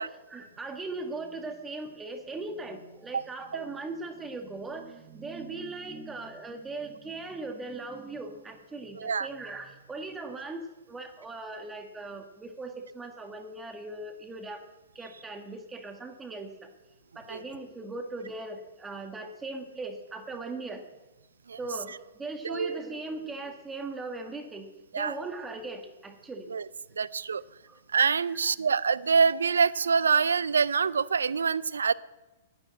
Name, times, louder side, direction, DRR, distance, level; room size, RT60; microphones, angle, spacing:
voice 1, 0.0-14.6 15.0-16.7 17.2-20.9 21.6-26.5 26.8-26.9 27.7-27.8 28.3-28.4, right 3 dB, 15° right, 5 dB, 1.7 m, -39 dB
voice 2, 9.0-9.3 17.3-17.4 21.5-21.6 22.4-22.8 24.9-25.1 26.5-26.6 27.0-27.4 27.9-31.9, right 5 dB, 80° right, 20 dB, 0.4 m, -25 dB
10.0 x 9.8 x 7.5 m, 1.1 s
hypercardioid pair, 115°, 0 cm